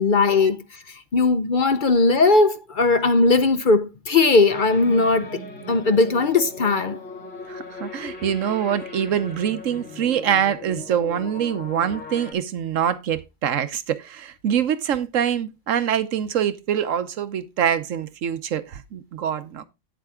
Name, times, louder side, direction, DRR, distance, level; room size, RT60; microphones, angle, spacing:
voice 1, 0.0-5.4 5.7-7.0, left 3 dB, 50° left, 0.7 m, -19 dB
sound 1, 4.5-12.3, left 3 dB, 70° left, 2.7 m, -38 dB
voice 2, 7.5-19.6, right 9 dB, 85° right, 1.2 m, -24 dB
9.3 x 7.5 x 3.6 m
omnidirectional pair, 1.3 m